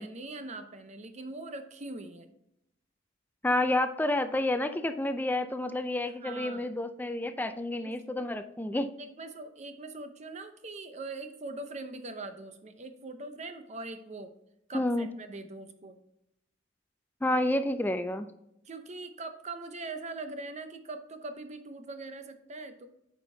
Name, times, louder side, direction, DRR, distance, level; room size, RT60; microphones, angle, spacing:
voice 1, 0.0-2.3 6.0-6.7 7.8-8.2 9.0-14.3 14.7-16.0 18.6-22.9, right 2 dB, 40° right, 8 dB, 0.7 m, -42 dB
voice 2, 3.4-8.9 14.7-15.1 17.2-18.3, left 1 dB, 10° left, 9 dB, 0.4 m, -29 dB
8.9 x 5.1 x 2.7 m, 0.80 s
head